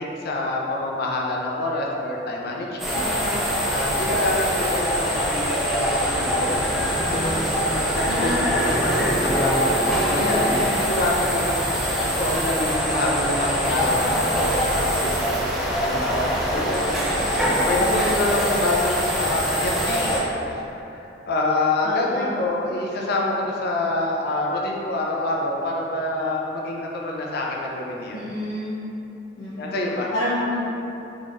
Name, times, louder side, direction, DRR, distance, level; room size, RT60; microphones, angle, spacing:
voice 1, 0.0-3.0 3.7-6.5 7.1-11.6 12.2-20.2 20.5-28.2 29.6-30.1, left 2 dB, 55° left, -2 dB, 0.5 m, -27 dB
sound 1, 2.8-20.2, equal, ahead, 0.5 m, -23 dB
voice 2, 2.9-3.4 8.0-8.5 17.5-18.2 21.8-22.3 28.1-28.8 29.4-29.7 30.1-30.6, left 1 dB, 80° left, -15 dB, 0.9 m, -29 dB
3.9 x 2.9 x 2.5 m, 2.9 s
head